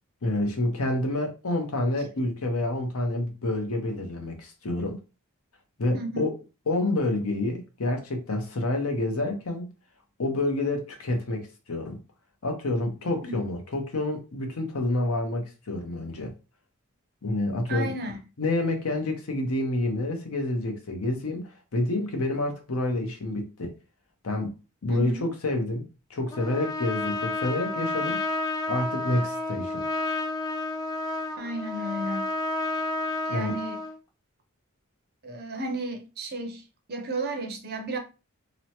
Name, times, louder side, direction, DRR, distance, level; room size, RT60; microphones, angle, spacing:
voice 1, 0.2-5.0 5.8-6.3 6.7-9.7 10.2-12.0 12.4-16.3 17.2-17.9 18.4-21.4 21.7-23.7 24.2-24.5 24.8-25.8 26.1-28.2 28.7-29.8 33.3-33.6, left 2 dB, 80° left, 0.8 m, -28 dB
voice 2, 5.9-6.3 13.2-13.3 17.7-18.2 24.9-25.3 31.4-32.3 33.3-33.8 35.2-38.0, right 2 dB, 45° right, 0.6 m, -33 dB
Trumpet, 26.3-34.0, left 2 dB, 15° left, 0.4 m, -30 dB
3.0 x 2.1 x 2.8 m
head